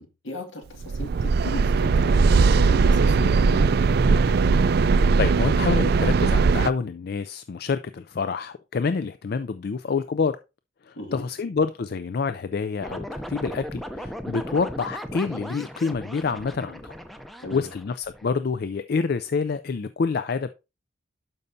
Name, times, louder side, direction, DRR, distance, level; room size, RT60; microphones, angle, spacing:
voice 1, 0.0-3.8 11.0-11.2 17.4-17.7, left 1 dB, 70° left, 2.1 m, -37 dB
sound 1, 0.8-6.7, right 4 dB, 50° right, 0.3 m, -19 dB
voice 2, 5.2-10.4 10.8-17.0 17.5-20.5, left 5 dB, 50° left, 0.4 m, -27 dB
sound 2, 12.8-18.3, equal, ahead, 0.5 m, -37 dB
12.0 x 5.5 x 2.7 m
head